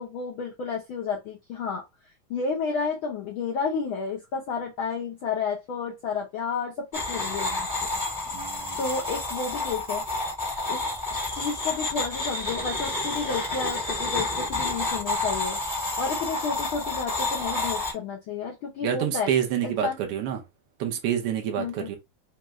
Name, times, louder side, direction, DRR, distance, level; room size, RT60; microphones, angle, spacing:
voice 1, 0.0-1.8 2.3-7.7 8.8-10.0 10.7-10.8 11.1-15.6 16.0-19.3 19.6-20.0 21.6-21.9, left 5 dB, 85° left, 1.1 m, -31 dB
sound 1, 6.9-17.9, left 2 dB, 20° left, 1.1 m, -29 dB
voice 2, 8.3-8.8 18.8-20.4 20.8-22.0, right 9 dB, 75° right, 1.3 m, -27 dB
5.0 x 2.3 x 3.1 m
omnidirectional pair, 3.5 m